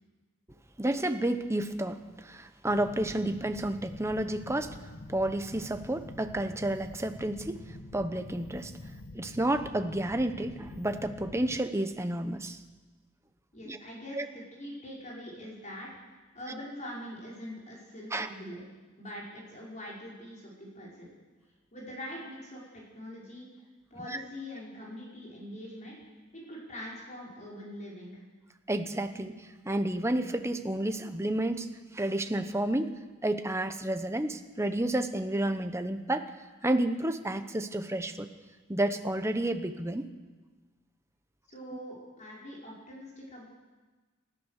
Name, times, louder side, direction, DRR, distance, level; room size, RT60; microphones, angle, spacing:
voice 1, 0.8-4.8 5.1-7.5 7.9-8.7 9.1-12.6 13.7-13.8 14.1-14.3 18.1-18.3 24.0-24.2 28.7-29.3 29.6-31.7 31.9-32.9 33.2-36.3 36.6-38.3 38.7-40.0, right 1 dB, 15° right, 8 dB, 1.1 m, -30 dB
sound 1, 2.7-11.6, left 2 dB, 55° left, 1.0 m, -46 dB
voice 2, 13.5-18.6 19.0-21.1 21.7-23.5 23.9-26.0 26.3-28.2 41.5-43.4, equal, 35° left, -4 dB, 5.3 m, -43 dB
29.0 x 14.0 x 6.7 m, 1.3 s
head